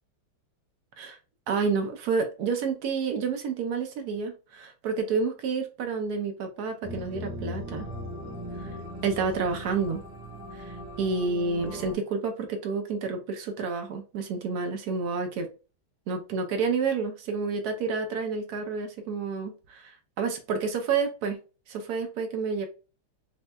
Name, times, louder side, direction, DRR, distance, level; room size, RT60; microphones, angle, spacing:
voice 1, 1.5-7.9 9.0-10.0 10.5-15.5 16.1-21.4 21.7-22.7, right 4 dB, 70° right, 0.9 m, -29 dB
sound 1, 6.8-11.9, left 1 dB, 5° right, 0.9 m, -39 dB
5.5 x 2.2 x 2.2 m
omnidirectional pair, 2.2 m